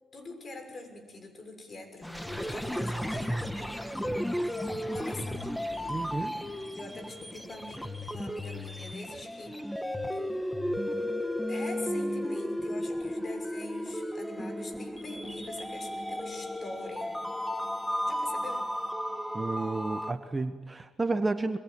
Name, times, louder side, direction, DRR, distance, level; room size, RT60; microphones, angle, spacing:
voice 1, 0.1-4.0 4.9-6.5 6.7-10.2 11.5-17.2 18.1-18.7, left 2 dB, 40° left, 5 dB, 6.3 m, -45 dB
sound 1, 2.0-20.1, equal, 5° left, 1.4 m, -34 dB
voice 2, 5.9-6.3 19.3-21.6, right 3 dB, 20° right, 8 dB, 1.4 m, -31 dB
25.5 x 22.5 x 9.4 m, 1.3 s
cardioid pair, 90°, 0 cm